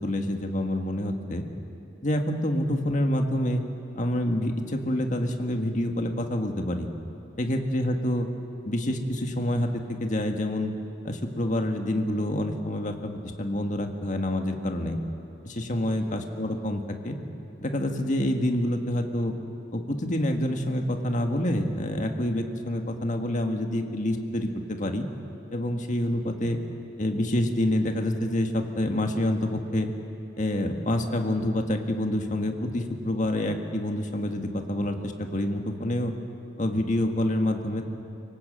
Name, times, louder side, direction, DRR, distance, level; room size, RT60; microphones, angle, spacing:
voice 1, 0.0-1.4 2.0-3.6 4.0-6.9 7.4-8.3 8.6-10.7 11.0-13.1 13.4-15.0 15.4-17.2 17.6-19.3 19.7-25.1 25.5-26.6 27.0-29.9 30.4-36.1 36.6-37.8, left 1 dB, 45° left, 4 dB, 1.7 m, -27 dB
25.0 x 18.0 x 7.7 m, 3.0 s
head